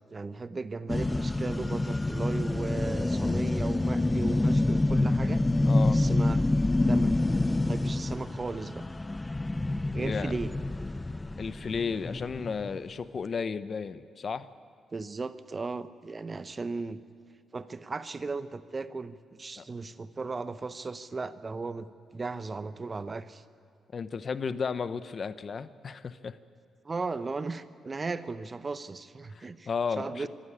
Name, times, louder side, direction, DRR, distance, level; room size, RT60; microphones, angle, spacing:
voice 1, 0.1-5.4 5.9-6.6 6.9-7.1 7.6-8.8 9.9-10.5 14.9-17.0 17.5-21.9 22.1-23.4 26.8-29.7 30.0-30.3, right 3 dB, 35° right, 13 dB, 0.9 m, -36 dB
sound 1, 0.9-12.8, left 2 dB, 20° left, 0.4 m, -27 dB
voice 2, 5.6-6.0 10.0-10.3 11.4-14.5 19.6-19.7 23.9-26.4 29.3-30.3, left 5 dB, 50° left, 14 dB, 0.8 m, -33 dB
25.0 x 12.5 x 8.7 m, 2.2 s
supercardioid pair, 55°, 0 cm